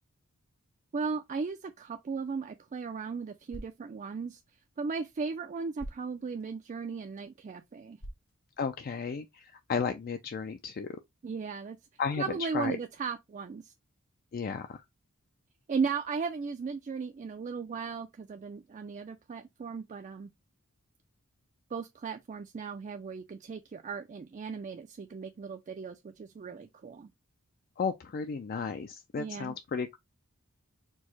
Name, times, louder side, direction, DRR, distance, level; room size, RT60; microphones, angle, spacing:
voice 1, 0.9-4.4 4.8-8.0 11.2-11.8 12.2-13.7 15.7-20.3 21.7-27.1 29.2-29.6, right 5 dB, 35° right, 0.3 m, -36 dB
sound 1, 2.3-9.2, equal, 75° left, 1.4 m, -52 dB
voice 2, 8.6-11.0 12.0-12.2 12.5-12.7 14.3-14.8 27.8-29.9, left 5 dB, 45° left, 0.4 m, -33 dB
4.5 x 2.1 x 4.3 m
head